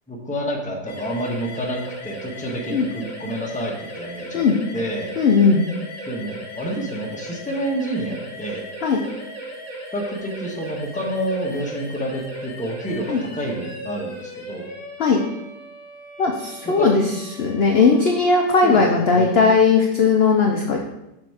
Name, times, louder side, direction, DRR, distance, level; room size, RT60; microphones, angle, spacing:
voice 1, 0.1-4.4 4.7-5.1 6.1-8.7 9.9-14.7 16.6-16.9 18.6-18.9 19.1-19.3, right 1 dB, 5° left, -2 dB, 0.8 m, -28 dB
sound 1, 0.9-19.6, right 1 dB, 25° left, 1.6 m, -37 dB
voice 2, 5.2-5.6 8.8-9.0 13.1-13.2 15.0-15.2 16.2-17.0 17.4-20.8, left 4 dB, 60° left, 1 dB, 0.6 m, -17 dB
6.3 x 4.3 x 4.7 m, 0.89 s
omnidirectional pair, 1.8 m